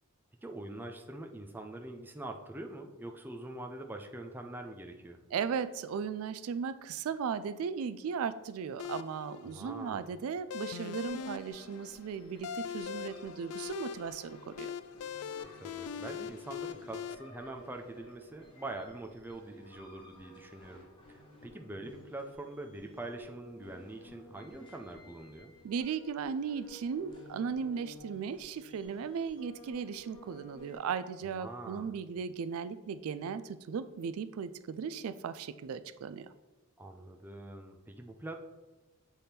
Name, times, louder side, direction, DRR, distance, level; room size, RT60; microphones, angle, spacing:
voice 1, 0.4-5.2 9.4-10.2 15.6-20.8 21.1-25.6 31.3-32.0 36.8-38.4, right 2 dB, 10° right, 2 dB, 0.5 m, -44 dB
voice 2, 5.3-14.7 25.6-36.3, right 6 dB, 70° right, 14 dB, 0.3 m, -37 dB
sound 1, 8.8-17.1, left 7 dB, 85° left, 0.3 m, -42 dB
sound 2, 11.0-30.8, equal, 25° left, 1.5 m, -55 dB
7.6 x 3.5 x 4.2 m, 1.1 s
head